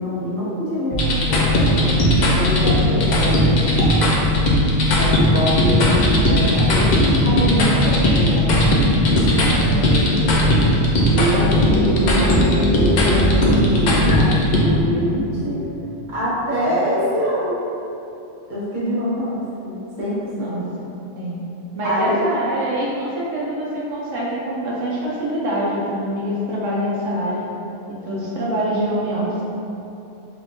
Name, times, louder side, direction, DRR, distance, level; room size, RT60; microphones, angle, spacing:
voice 1, 0.0-1.4 1.7-2.0 2.3-4.1 4.9-8.8 9.0-10.4 11.1-15.6 16.1-17.6 18.5-19.3 19.6-20.5 21.8-22.2, equal, 40° right, -10 dB, 1.1 m, -24 dB
sound 1, 0.9-14.6, left 1 dB, 65° left, 0.4 m, -17 dB
voice 2, 20.3-20.6 21.1-21.4 21.7-27.4 28.0-29.3, right 1 dB, 85° right, -6 dB, 1.0 m, -24 dB
3.4 x 3.0 x 2.5 m, 2.9 s
omnidirectional pair, 1.3 m